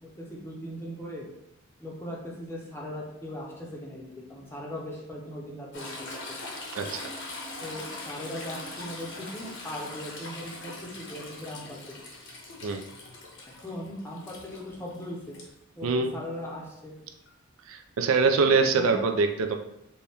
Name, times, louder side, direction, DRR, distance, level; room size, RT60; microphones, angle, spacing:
voice 1, 0.0-1.3 1.8-4.0 4.3-6.1 7.6-11.8 13.6-15.4 15.8-16.9 18.4-19.0, left 1 dB, 10° left, -3 dB, 0.6 m, -39 dB
Toilet flush / Trickle dribble, 5.7-15.5 17.3-17.4, left 2 dB, 55° left, 0.8 m, -41 dB
voice 2, 6.7-7.1 12.6-12.8 15.8-16.2 17.7-19.6, right 4 dB, 75° right, 6 dB, 0.3 m, -24 dB
4.1 x 2.2 x 3.4 m, 0.83 s
head